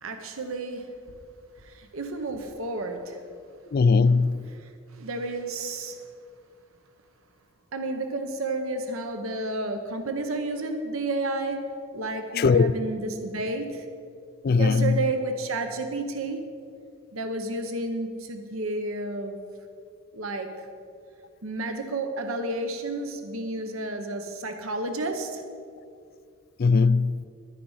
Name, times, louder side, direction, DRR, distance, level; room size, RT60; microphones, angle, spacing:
voice 1, 0.0-0.9 1.6-3.2 4.6-6.1 7.7-13.9 14.6-16.4 17.1-19.4 20.1-20.7 21.4-25.4, right 2 dB, 75° right, 1.0 m, -31 dB
voice 2, 3.7-4.5 12.3-12.7 14.4-15.0 26.6-27.3, left 4 dB, 45° left, 0.3 m, -20 dB
11.0 x 10.5 x 5.6 m
head